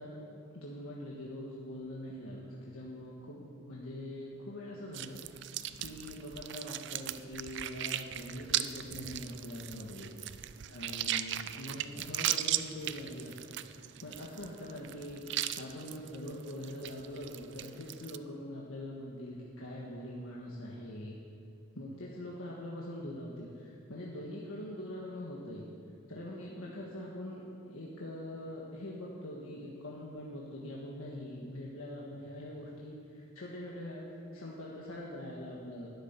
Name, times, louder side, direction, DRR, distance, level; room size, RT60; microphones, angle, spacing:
voice 1, 0.0-5.2 5.8-10.1 10.7-21.1 21.7-25.7 26.1-35.9, left 1 dB, 75° left, -4 dB, 1.6 m, -43 dB
sound 1, 4.9-18.2, right 12 dB, 55° right, 0.4 m, -38 dB
12.5 x 7.2 x 9.8 m, 2.4 s
head